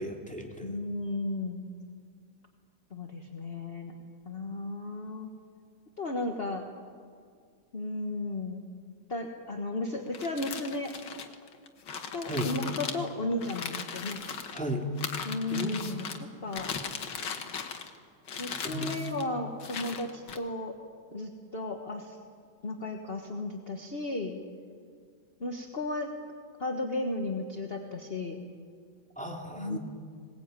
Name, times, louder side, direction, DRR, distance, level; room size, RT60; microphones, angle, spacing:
voice 1, 0.0-0.7 12.3-12.5 14.5-14.8 15.5-15.9 18.6-18.9 29.2-29.8, equal, 5° left, 1 dB, 2.2 m, -35 dB
voice 2, 0.6-1.7 2.9-3.9 4.3-5.3 6.0-6.6 7.7-8.6 9.1-10.9 12.1-14.2 15.2-16.0 16.4-16.7 18.4-20.7 21.1-22.2 22.6-24.4 25.4-26.1 26.6-28.4 29.5-29.8, left 2 dB, 35° left, 2 dB, 1.5 m, -34 dB
sound 1, 10.1-14.6 15.0-16.2 16.5-18.0 18.3-19.2 19.6-20.4, left 6 dB, 80° left, 2.0 m, -38 dB
21.0 x 19.5 x 9.0 m, 2.1 s
omnidirectional pair, 1.9 m